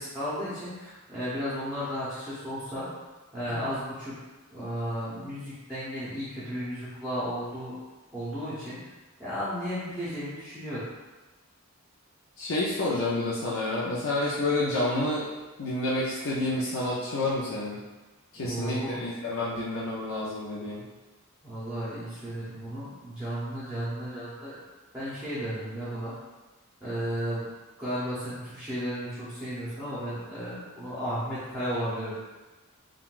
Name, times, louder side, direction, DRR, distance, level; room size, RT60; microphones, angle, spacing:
voice 1, 0.0-2.9 3.3-4.2 4.5-7.8 8.1-8.8 9.2-10.8 18.3-19.0 21.4-24.6 24.9-26.1 26.8-27.4 27.8-32.2, equal, 5° right, -12 dB, 0.7 m, -34 dB
voice 2, 12.4-15.3 15.6-17.8 18.3-20.9, left 2 dB, 75° left, -6 dB, 0.5 m, -29 dB
3.6 x 2.2 x 2.4 m, 1.2 s
head